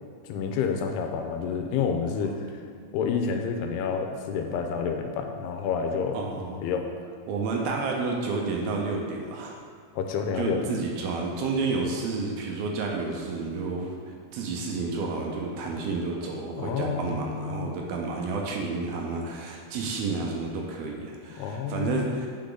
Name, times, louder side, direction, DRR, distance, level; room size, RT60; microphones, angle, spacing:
voice 1, 0.3-2.5 2.9-6.2 6.6-6.9 10.0-10.8 16.2-17.7 21.4-22.2, left 6 dB, 85° left, 4 dB, 2.7 m, -29 dB
voice 2, 6.1-6.6 7.3-9.6 10.3-22.3, right 3 dB, 75° right, 0 dB, 2.5 m, -30 dB
8.5 x 5.8 x 3.9 m, 2.3 s
omnidirectional pair, 4.7 m